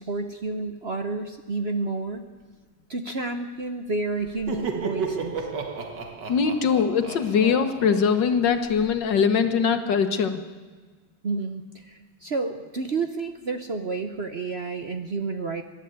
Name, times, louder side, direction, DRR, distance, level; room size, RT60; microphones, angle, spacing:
voice 1, 0.0-2.3 2.9-5.5 11.2-15.6, right 3 dB, 45° right, 7 dB, 1.0 m, -30 dB
Laughter, 4.2-8.9, right 5 dB, 65° right, 2.3 m, -33 dB
voice 2, 6.3-10.4, left 6 dB, 70° left, 8 dB, 1.9 m, -22 dB
22.5 x 12.0 x 9.5 m, 1.4 s
omnidirectional pair, 2.1 m